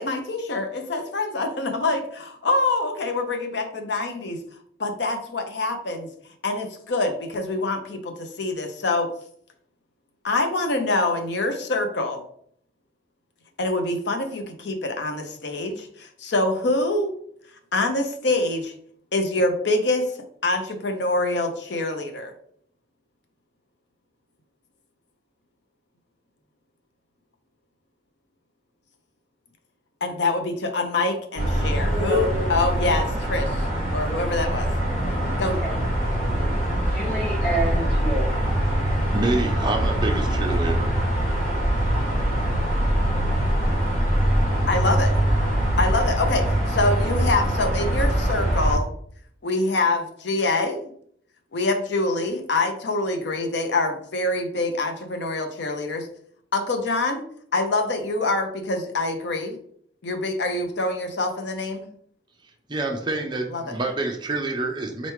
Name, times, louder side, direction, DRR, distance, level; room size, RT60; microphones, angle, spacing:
voice 1, 0.0-4.4 4.8-6.1 6.4-9.1 10.2-12.2 13.6-17.1 17.7-18.7 19.1-20.1 20.4-22.3 30.0-34.7 35.4-35.6 44.7-45.1 45.8-48.9 49.4-50.9 51.5-56.1 56.5-57.2 57.5-59.6 60.0-61.9 63.5-63.6, left 2 dB, 60° left, 5 dB, 0.7 m, -25 dB
sound 1, 31.4-48.8, right 1 dB, 40° left, 1.7 m, -23 dB
voice 2, 31.8-32.5 35.6-35.8 36.9-38.3, right 1 dB, 10° left, -7 dB, 1.7 m, -28 dB
voice 3, 39.1-40.9 62.7-65.1, right 2 dB, 25° right, 3 dB, 0.6 m, -27 dB
4.0 x 3.4 x 3.2 m, 0.64 s
head